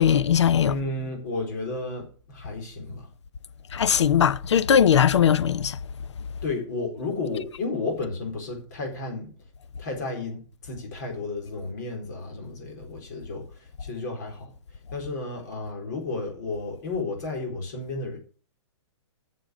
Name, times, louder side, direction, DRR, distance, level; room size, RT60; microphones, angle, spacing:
voice 1, 0.0-0.7 3.7-5.8, left 8 dB, 70° left, 0.8 m, -19 dB
voice 2, 0.6-3.1 6.4-9.3 9.8-14.5 14.9-18.2, left 3 dB, 35° left, 4.2 m, -32 dB
8.9 x 7.0 x 8.2 m
hypercardioid pair, 175°, 15 cm